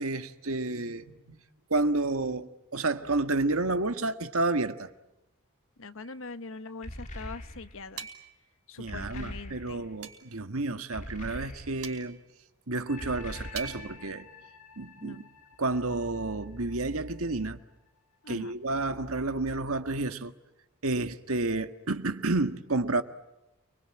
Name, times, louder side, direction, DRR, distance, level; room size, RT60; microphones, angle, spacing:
voice 1, 0.0-1.4 1.7-4.9 8.8-12.2 12.7-14.3 14.8-15.2 15.6-17.6 18.3-20.3 20.8-23.0, right 2 dB, 70° right, 1.7 m, -30 dB
voice 2, 5.8-8.1 8.7-9.8 15.0-15.3 18.2-18.6, left 3 dB, 60° left, 1.2 m, -43 dB
sound 1, 6.0-6.3 8.0-8.5 10.0-10.4 11.8-12.3 13.6-14.1, right 8 dB, 90° right, 5.1 m, -43 dB
sound 2, 6.8-7.9 8.9-10.0 10.9-12.0 13.0-14.1, left 1 dB, 35° left, 3.4 m, -42 dB
sound 3, 12.9-18.2 18.7-18.9, left 6 dB, 85° left, 3.0 m, -52 dB
29.5 x 22.5 x 8.9 m
head